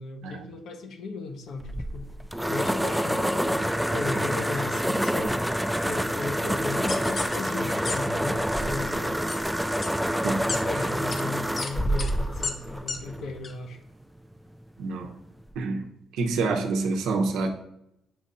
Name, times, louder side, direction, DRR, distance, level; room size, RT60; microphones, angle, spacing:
voice 1, 0.0-2.0 2.5-5.4 5.8-9.2 10.4-13.8, left 3 dB, 75° left, 4 dB, 1.0 m, -36 dB
sound 1, 1.6-13.4, equal, ahead, 0.4 m, -27 dB
sound 2, 6.9-7.4 7.9-8.0 8.2-8.6 9.3-9.4 9.8-9.9 10.5-10.6 11.1-11.2 11.6-11.7 12.0-12.1 12.4-12.5 12.9-13.0 13.4-13.5, left 4 dB, 45° left, 0.8 m, -32 dB
voice 2, 14.8-15.1 15.6-15.8 16.1-17.5, right 3 dB, 85° right, 3 dB, 0.8 m, -27 dB
7.4 x 2.5 x 5.4 m, 0.79 s
cardioid pair, 90°, 0 cm